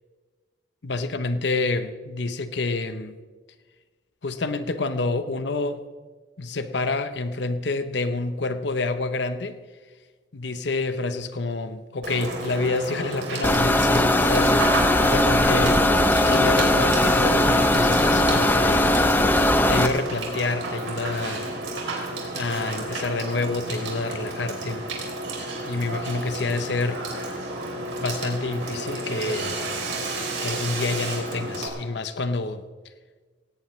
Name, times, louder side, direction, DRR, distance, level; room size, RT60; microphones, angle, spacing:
voice 1, 0.8-3.2 4.2-5.8 6.4-9.6 10.3-21.5 22.3-24.9 25.4-27.0 28.0-29.6 30.4-32.6, left 3 dB, 65° left, 11 dB, 0.8 m, -28 dB
Water / Water tap faucet / Sink (filling or washing), 12.0-31.7, right 2 dB, 85° right, 3.4 m, -31 dB
sound 1, 13.4-19.9, left 1 dB, 10° left, 0.6 m, -19 dB
17.5 x 17.0 x 3.2 m, 1.4 s
head